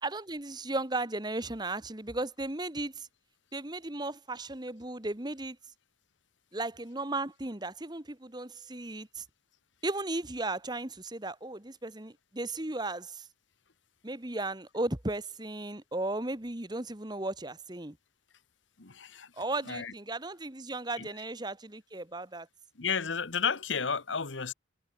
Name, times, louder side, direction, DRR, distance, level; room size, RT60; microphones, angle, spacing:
voice 1, 0.0-3.1 3.5-5.6 6.5-9.2 9.8-13.3 14.0-18.0 19.4-22.5, right 2 dB, 20° right, 1.5 m, -35 dB
voice 2, 18.8-19.3 19.6-19.9 21.0-21.1 22.7-24.5, left 6 dB, 80° left, 1.4 m, -32 dB
head